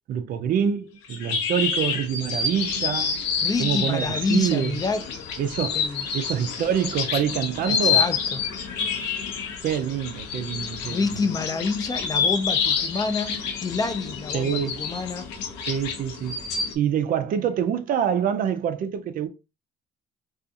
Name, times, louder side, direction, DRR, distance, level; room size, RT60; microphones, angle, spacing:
voice 1, 0.1-3.2 3.6-4.8 5.4-5.9 6.1-8.1 9.6-11.2 14.3-14.8 15.7-16.4 16.7-19.3, right 8 dB, 55° right, 0.4 m, -26 dB
sound 1, 1.0-16.7, left 6 dB, 85° left, 0.7 m, -28 dB
voice 2, 3.4-5.0 5.7-6.1 7.6-8.4 10.9-15.3, left 4 dB, 20° left, 0.4 m, -28 dB
2.5 x 2.3 x 2.7 m
cardioid pair, 110°, 17 cm